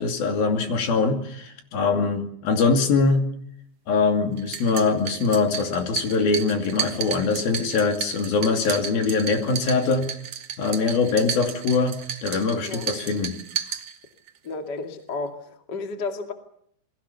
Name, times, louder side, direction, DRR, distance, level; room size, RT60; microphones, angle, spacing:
voice 1, 0.0-3.2 3.9-10.1 10.6-12.0 12.2-13.4, left 4 dB, 60° left, 5 dB, 4.2 m, -22 dB
sound 1, 4.4-14.4, right 8 dB, 80° right, 1.3 m, -34 dB
voice 2, 14.4-16.3, left 3 dB, 30° left, 5 dB, 2.1 m, -32 dB
28.5 x 22.0 x 7.0 m, 0.67 s
omnidirectional pair, 5.1 m